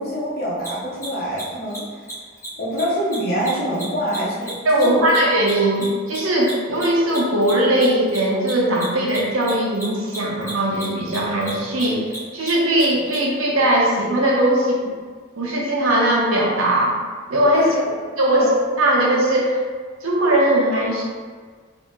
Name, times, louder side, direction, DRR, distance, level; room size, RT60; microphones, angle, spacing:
voice 1, 0.0-2.0 2.6-5.1 17.5-17.9 18.3-18.5, equal, 45° left, -6 dB, 0.9 m, -25 dB
Mechanisms, 0.6-0.7 1.0-1.1 1.3-1.4 1.7-1.8 2.0-2.1 2.4-2.5 2.7-2.8 3.1-5.8 6.1-13.2, right 1 dB, 15° left, 1.2 m, -35 dB
voice 2, 4.6-12.1 12.3-15.0 15.4-17.0 17.3-17.7 18.2-18.5 18.8-19.6 20.0-21.0, right 1 dB, 85° right, -3 dB, 0.8 m, -19 dB
2.9 x 2.7 x 3.6 m, 1.5 s
head